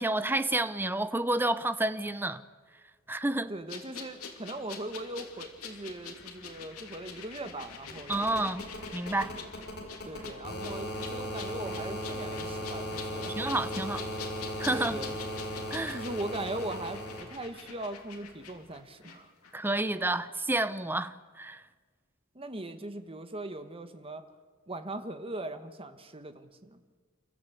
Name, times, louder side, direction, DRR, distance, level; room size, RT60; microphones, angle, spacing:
voice 1, 0.0-2.4 3.1-3.5 8.1-8.6 8.9-9.3 13.4-14.0 14.6-15.0 15.7-16.0 19.5-21.6, right 2 dB, 10° right, 0.7 m, -30 dB
voice 2, 3.5-8.4 9.2-9.4 10.1-13.4 14.0-14.1 14.7-15.1 15.9-19.3 22.3-24.2 24.7-26.8, right 2 dB, 25° right, 1.4 m, -40 dB
sound 1, 3.7-19.2 19.4-19.6, left 6 dB, 75° left, 2.9 m, -45 dB
sound 2, 6.0-6.1 6.3-17.2 18.6-18.7, equal, 50° left, 4.7 m, -38 dB
29.0 x 14.0 x 8.5 m
head